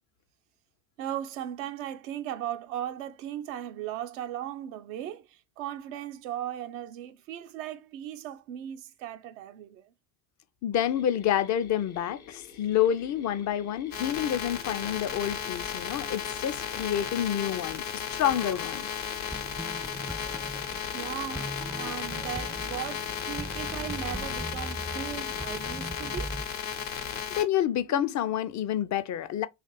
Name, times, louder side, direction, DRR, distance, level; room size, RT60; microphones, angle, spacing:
voice 1, 1.0-9.9 20.9-26.4, right 11 dB, 75° right, 0.6 m, -37 dB
voice 2, 10.6-18.9 26.9-29.5, left 10 dB, 45° left, 0.5 m, -28 dB
Mechanisms, 10.7-25.8, left 6 dB, 90° left, 0.6 m, -51 dB
sound 1, 13.9-27.4, left 8 dB, 70° left, 1.0 m, -35 dB
sound 2, 18.3-26.4, right 1 dB, 5° right, 0.4 m, -40 dB
2.9 x 2.5 x 4.3 m
hypercardioid pair, 50°, 41 cm